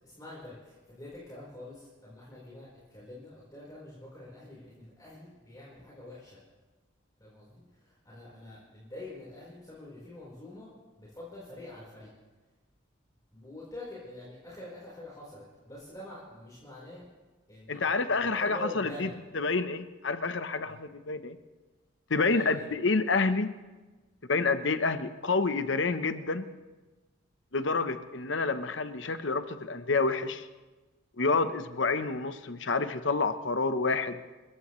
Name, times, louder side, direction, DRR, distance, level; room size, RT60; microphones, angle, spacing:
voice 1, 0.0-6.4 7.2-12.1 13.3-17.0 17.5-19.2 20.6-20.7 22.2-22.7, left 1 dB, 20° left, -6 dB, 4.3 m, -46 dB
voice 2, 17.7-21.4 22.1-23.5 24.3-26.4 27.5-30.5 31.2-34.2, left 3 dB, 65° left, 10 dB, 0.9 m, -28 dB
30.0 x 14.5 x 3.2 m, 1.2 s
head